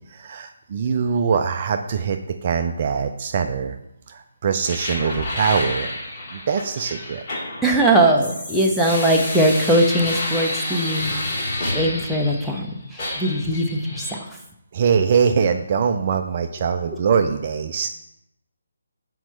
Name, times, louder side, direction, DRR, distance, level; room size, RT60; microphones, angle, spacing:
voice 1, 0.1-3.8 4.1-5.9 6.3-7.2 14.7-18.0, right 6 dB, 35° right, 6 dB, 0.4 m, -22 dB
sound 1, 4.6-12.6 13.0-14.2, left 1 dB, 30° left, 2.1 m, -29 dB
voice 2, 7.6-11.1 11.4-14.2, right 1 dB, ahead, -3 dB, 0.7 m, -20 dB
5.9 x 4.5 x 5.4 m, 0.81 s
figure-of-eight pair, 145°, 0 cm